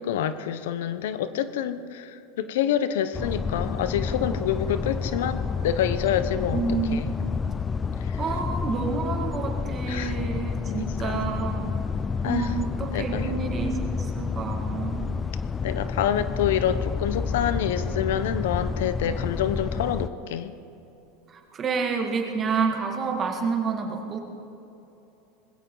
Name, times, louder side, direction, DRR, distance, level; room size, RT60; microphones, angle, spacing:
voice 1, 0.0-6.6 6.9-7.1 9.9-10.2 10.6-11.2 12.2-12.5 12.9-13.3 15.6-20.5, left 9 dB, 80° left, 12 dB, 0.8 m, -27 dB
sound 1, 3.1-20.1, left 5 dB, 15° left, 0.4 m, -29 dB
voice 2, 6.5-7.1 8.2-11.8 12.2-15.1 21.3-24.2, right 5 dB, 25° right, 2 dB, 1.9 m, -29 dB
20.5 x 16.0 x 3.9 m, 2.9 s
supercardioid pair, 140°, 0 cm